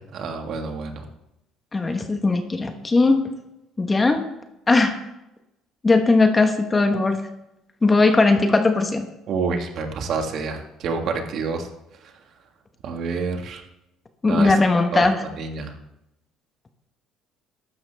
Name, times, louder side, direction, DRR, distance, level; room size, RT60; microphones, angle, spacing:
voice 1, 0.1-1.0 9.3-11.7 12.0-12.1 12.8-13.6 14.3-14.5 14.9-15.7, right 4 dB, 50° right, 4 dB, 1.7 m, -28 dB
voice 2, 1.7-3.3 3.8-4.2 4.7-4.9 5.8-7.2 7.8-9.0 14.2-15.2, left 3 dB, 20° left, 6 dB, 1.1 m, -18 dB
14.0 x 12.0 x 3.4 m, 0.89 s
cardioid pair, 140°, 0 cm